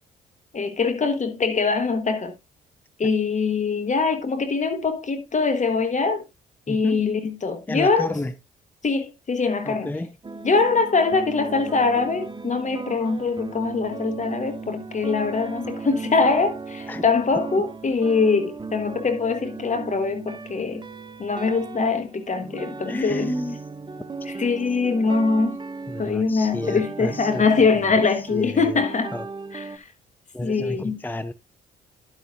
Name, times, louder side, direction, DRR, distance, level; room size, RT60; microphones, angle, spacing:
voice 1, 0.5-2.3 3.0-6.2 6.7-8.1 8.8-9.9 10.4-20.8 21.2-23.3 24.2-25.5 26.0-29.1 29.5-29.9 30.4-31.0, left 4 dB, 40° left, 1.4 m, -23 dB
voice 2, 6.7-7.0 7.7-8.3 9.6-10.2 16.9-17.0 22.9-23.6 25.9-27.7 28.2-28.8 29.1-29.3 30.3-31.3, left 1 dB, 10° left, 0.5 m, -31 dB
sound 1, 10.2-29.8, right 4 dB, 25° right, 0.8 m, -36 dB
11.5 x 8.0 x 2.5 m
supercardioid pair, 60°, 19 cm